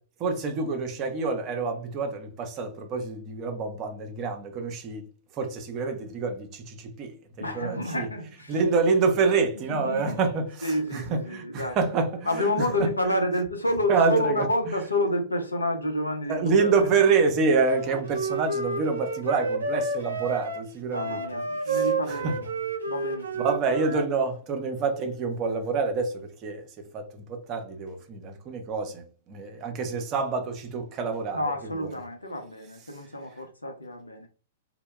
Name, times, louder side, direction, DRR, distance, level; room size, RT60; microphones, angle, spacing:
voice 1, 0.2-8.1 8.5-12.9 13.9-14.7 16.3-22.4 23.4-26.7 26.9-31.9, right 4 dB, 35° right, 0.6 m, -27 dB
voice 2, 7.4-8.5 9.7-10.2 10.6-11.8 12.3-16.7 20.9-22.5 22.9-23.5 31.3-34.3, left 1 dB, 85° left, 0.6 m, -29 dB
Wind instrument woodwind instrument, 17.7-24.1, right 3 dB, 75° right, 0.6 m, -30 dB
2.1 x 2.0 x 3.0 m
figure-of-eight pair, 110°, 0 cm